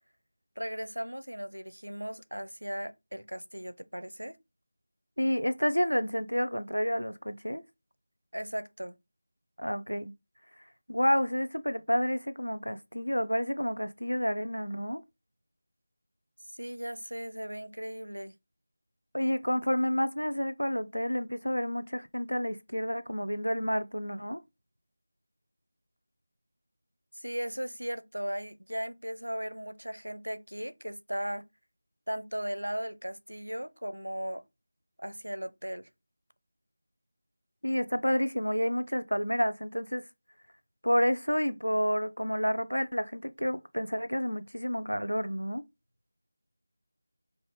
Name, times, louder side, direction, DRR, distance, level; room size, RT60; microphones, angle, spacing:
voice 1, 0.6-4.4 8.3-9.0 16.6-18.4 27.1-31.5 32.1-34.4 35.0-35.9, equal, 85° right, 0.5 m, -37 dB
voice 2, 5.2-7.6 9.6-10.1 10.9-15.0 19.1-24.4 37.6-40.0 40.8-45.6, equal, 90° left, 0.6 m, -29 dB
5.2 x 2.5 x 3.3 m
figure-of-eight pair, 165°, 0 cm